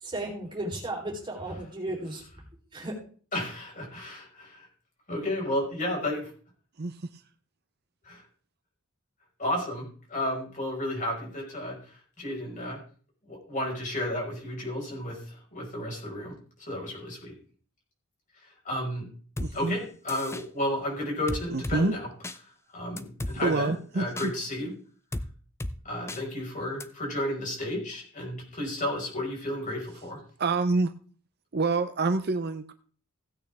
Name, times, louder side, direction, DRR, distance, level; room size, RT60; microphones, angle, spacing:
voice 1, 0.0-2.2 2.7-2.9, right 1 dB, 20° right, -2 dB, 3.8 m, -34 dB
voice 2, 3.3-4.7 5.1-6.3 8.0-8.2 9.4-12.8 13.3-16.3 16.6-17.3 18.4-19.1 19.5-22.1 22.4-24.7 25.9-30.2, left 1 dB, 40° left, -1 dB, 5.2 m, -32 dB
sound 1, 19.4-19.5 20.1-20.4 21.3-21.8 22.2-22.4 23.0-23.4 24.2-24.3 25.1-25.3 25.6-25.7 26.1-26.2 26.8-26.9, left 1 dB, 15° left, 0.6 m, -33 dB
voice 3, 19.4-19.8 21.5-21.9 23.4-24.3 30.4-30.9 31.5-32.7, right 3 dB, 50° right, 9 dB, 0.7 m, -27 dB
16.0 x 8.9 x 3.5 m, 0.43 s
head